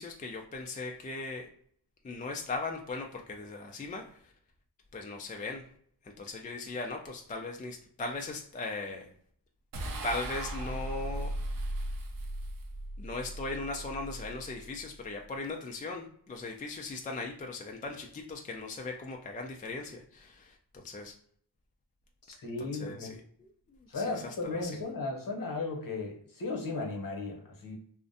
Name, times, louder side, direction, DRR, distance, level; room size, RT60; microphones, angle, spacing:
voice 1, 0.0-1.5 2.0-4.3 4.9-5.7 6.0-9.1 10.0-11.3 13.0-21.1 22.6-24.9, left 3 dB, 20° left, 1 dB, 0.3 m, -39 dB
sound 1, 9.7-15.1, right 1 dB, 50° right, 0.6 m, -38 dB
voice 2, 22.3-23.1 23.9-27.8, left 3 dB, 45° left, 2 dB, 0.9 m, -35 dB
2.5 x 2.1 x 2.5 m, 0.62 s
cardioid pair, 40°, 45 cm